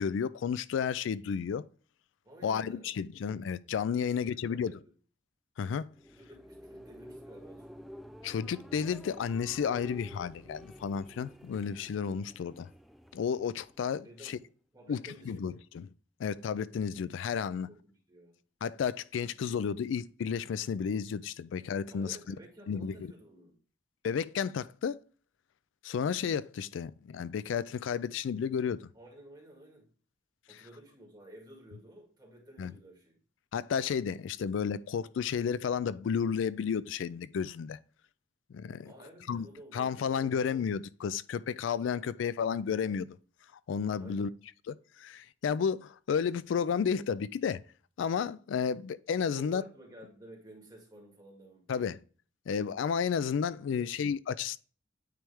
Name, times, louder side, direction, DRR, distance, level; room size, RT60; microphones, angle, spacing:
voice 1, 0.0-1.6 2.4-4.7 5.6-5.9 8.2-12.7 13.1-14.4 14.9-15.9 16.2-17.7 18.6-22.4 22.7-23.1 24.0-25.0 25.8-28.9 30.5-30.6 32.6-32.7 33.5-37.8 38.5-38.9 39.3-39.5 39.7-43.1 43.7-44.3 44.7-47.6 48.0-49.6 51.7-52.0 52.5-54.6, left 7 dB, 85° left, 0.3 m, -32 dB
voice 2, 2.2-3.0 4.0-4.9 6.1-7.9 14.0-14.4 14.7-15.6 17.7-18.4 21.9-23.6 28.9-29.9 30.5-33.2 38.9-40.3 44.0-44.3 49.3-51.7 53.7-53.9, right 1 dB, 20° right, 2.0 m, -53 dB
sound 1, 5.9-14.4, equal, ahead, 0.3 m, -51 dB
9.1 x 3.3 x 3.4 m
head